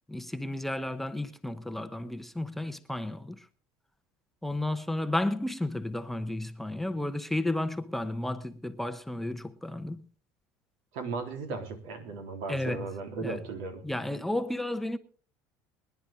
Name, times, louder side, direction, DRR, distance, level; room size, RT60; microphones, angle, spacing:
voice 1, 0.1-3.5 4.4-10.1 12.5-12.9 13.2-13.4 13.8-15.0, left 1 dB, 5° left, 0.8 m, -32 dB
voice 2, 10.9-13.8, right 4 dB, 75° right, 3.7 m, -36 dB
23.0 x 10.5 x 3.7 m
supercardioid pair, 115°, 7 cm